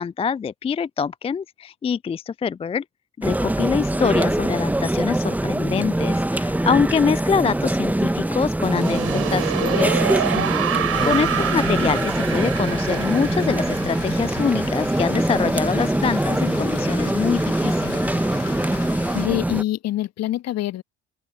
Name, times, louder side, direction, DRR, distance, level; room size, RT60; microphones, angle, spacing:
voice 1, 0.0-2.8 3.2-10.2 11.0-18.0, left 6 dB, 15° left, 0.5 m, -25 dB
sound 1, 3.2-19.6, right 1 dB, 5° right, 1.3 m, -23 dB
sound 2, 8.6-15.5, right 9 dB, 40° right, 3.9 m, -27 dB
voice 2, 10.3-11.2 19.1-20.8, left 14 dB, 45° left, 1.6 m, -27 dB
Rain, 10.9-19.3, left 7 dB, 85° left, 3.8 m, -37 dB
open air
figure-of-eight pair, 60°, 36 cm